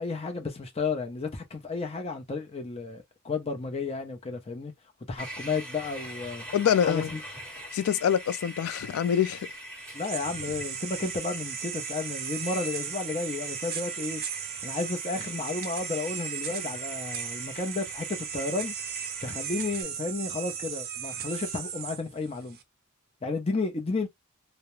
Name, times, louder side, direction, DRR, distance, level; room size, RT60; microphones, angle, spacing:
voice 1, 0.0-4.7 5.1-6.5 6.8-7.2 9.9-14.2 14.6-18.7 19.2-22.6 23.2-24.1, left 3 dB, 30° left, 0.6 m, -32 dB
sound 1, 5.2-19.8, equal, 5° left, 1.2 m, -43 dB
voice 2, 6.5-7.1 7.7-9.5, left 8 dB, 80° left, 0.3 m, -25 dB
sound 2, 9.8-22.6, right 8 dB, 45° right, 0.5 m, -36 dB
2.3 x 2.0 x 3.0 m
head